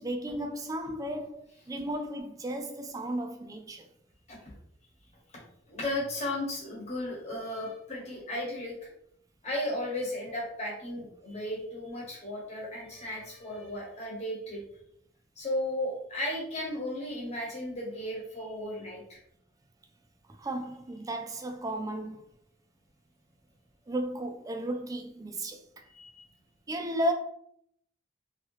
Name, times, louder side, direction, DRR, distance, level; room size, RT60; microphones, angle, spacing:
voice 1, 0.0-3.9 20.4-22.2 23.9-25.8 26.7-27.1, right 1 dB, 20° right, 0.4 m, -34 dB
voice 2, 5.7-8.7 9.4-14.6 15.4-19.2 25.9-26.2, left 1 dB, 35° left, 1.2 m, -35 dB
3.1 x 2.8 x 3.1 m
head